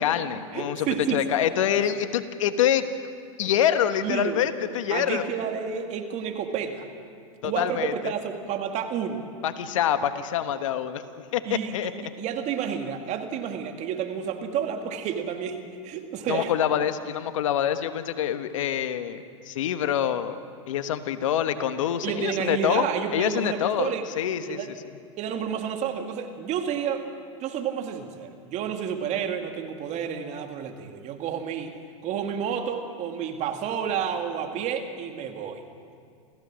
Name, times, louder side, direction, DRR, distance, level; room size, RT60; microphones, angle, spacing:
voice 1, 0.0-2.8 3.4-5.2 7.4-8.1 9.4-11.0 11.3-11.9 16.3-20.4 20.7-22.8 23.1-24.7, left 10 dB, 75° left, 10 dB, 1.2 m, -26 dB
voice 2, 0.5-1.3 4.0-4.4 4.9-6.9 7.4-9.2 11.5-16.5 22.0-24.1 24.5-24.7 25.2-27.0 27.4-31.8 32.0-35.6, right 8 dB, 45° right, 5 dB, 2.3 m, -30 dB
28.5 x 15.5 x 6.3 m, 2.3 s
hypercardioid pair, 95°, 17 cm